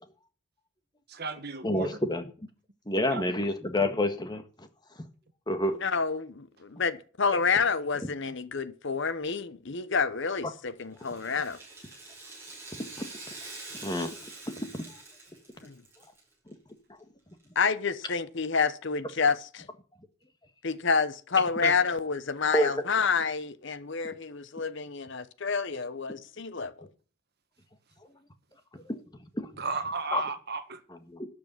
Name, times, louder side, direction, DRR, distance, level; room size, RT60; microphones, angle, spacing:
voice 1, 1.1-1.9 3.1-3.2 21.6-21.7 29.6-30.8, right 4 dB, 50° right, 1.6 m, -34 dB
voice 2, 1.6-2.3 2.9-4.7 5.5-5.8 12.8-13.1 13.8-14.1 14.5-14.9 16.5-16.6 22.5-22.7 28.7-29.0 29.3-29.6 30.1-30.2 30.9-31.3, left 1 dB, 20° left, 1.6 m, -29 dB
voice 3, 5.8-11.6 15.6-15.7 17.5-19.7 20.6-26.9, left 5 dB, 55° left, 0.9 m, -29 dB
Rattle (instrument), 10.9-16.2 16.5-16.6 17.4-17.5, right 2 dB, 10° right, 6.3 m, -45 dB
12.5 x 6.8 x 9.4 m
head